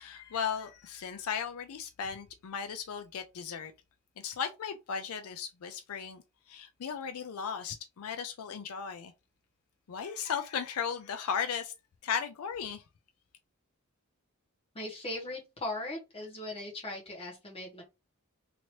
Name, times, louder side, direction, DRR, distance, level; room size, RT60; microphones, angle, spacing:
voice 1, 0.0-3.7 4.2-9.1 9.9-11.7 12.0-12.8, left 7 dB, 75° left, 0.4 m, -36 dB
voice 2, 14.7-17.8, left 1 dB, 25° left, 1.2 m, -39 dB
3.0 x 2.8 x 2.9 m
head